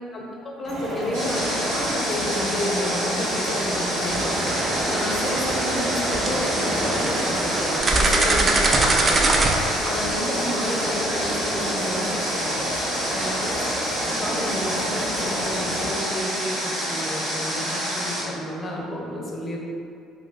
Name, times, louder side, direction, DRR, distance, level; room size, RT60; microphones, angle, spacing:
voice 1, 0.1-4.4 4.9-9.3 9.8-12.6 13.1-13.6 14.2-19.6, left 1 dB, 30° left, -2 dB, 0.5 m, -31 dB
sound 1, 0.6-15.9, equal, 55° right, 0.8 m, -31 dB
Water, 1.1-18.2, equal, 75° right, 1.0 m, -28 dB
sound 2, 4.1-9.6, right 2 dB, 30° right, 0.3 m, -23 dB
2.3 x 2.2 x 3.6 m, 2.4 s
figure-of-eight pair, 55°, 0 cm